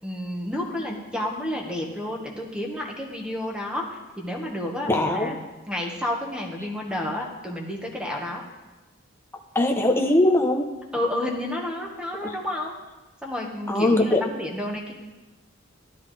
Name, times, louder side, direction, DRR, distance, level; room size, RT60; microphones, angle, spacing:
voice 1, 0.0-5.4 5.7-8.4 10.9-12.8 13.2-14.9, left 1 dB, 5° right, 0 dB, 1.5 m, -30 dB
voice 2, 4.9-5.4 9.5-10.7 12.2-12.3 13.7-14.2, left 1 dB, 10° left, 1 dB, 0.9 m, -21 dB
12.5 x 12.0 x 3.3 m, 1.1 s
head